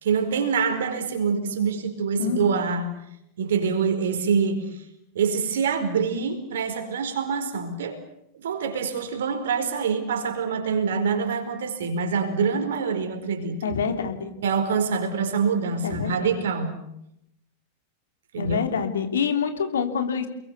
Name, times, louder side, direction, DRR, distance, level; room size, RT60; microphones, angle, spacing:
voice 1, 0.0-2.9 3.4-4.8 5.1-8.0 8.3-13.7 14.4-16.8 18.3-18.6, right 5 dB, 60° right, 7 dB, 4.9 m, -25 dB
voice 2, 13.6-14.3 15.8-16.2 18.4-20.3, left 6 dB, 65° left, 6 dB, 3.3 m, -26 dB
29.5 x 22.0 x 7.1 m, 0.79 s
figure-of-eight pair, 90°, 0 cm